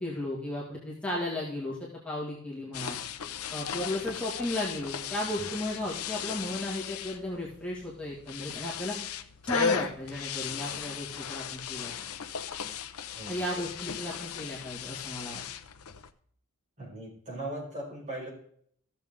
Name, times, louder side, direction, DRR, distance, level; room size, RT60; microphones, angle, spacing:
voice 1, 0.0-3.0 3.5-9.0 9.4-11.9 13.3-15.4, left 1 dB, 5° left, -6 dB, 2.1 m, -35 dB
sound 1, 2.7-16.1, left 7 dB, 85° left, 0.7 m, -36 dB
voice 2, 16.8-18.3, right 1 dB, 35° right, -4 dB, 5.4 m, -38 dB
15.5 x 6.9 x 3.7 m, 0.64 s
head